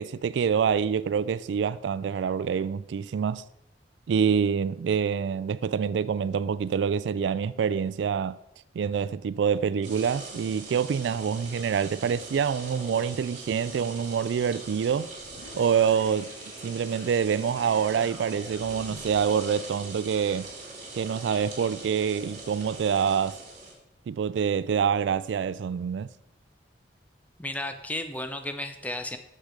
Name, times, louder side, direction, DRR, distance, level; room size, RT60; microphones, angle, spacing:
voice 1, 0.0-3.4 4.1-8.4 8.7-15.1 15.5-16.3 16.6-20.5 20.9-23.4 24.1-26.1, right 7 dB, 75° right, 0.3 m, -26 dB
sound 1, 9.8-23.7, right 3 dB, 45° right, 2.4 m, -42 dB
sound 2, 15.2-19.4, left 4 dB, 85° left, 0.6 m, -48 dB
voice 2, 27.4-29.2, left 1 dB, 10° left, 0.5 m, -33 dB
6.6 x 6.5 x 4.8 m
head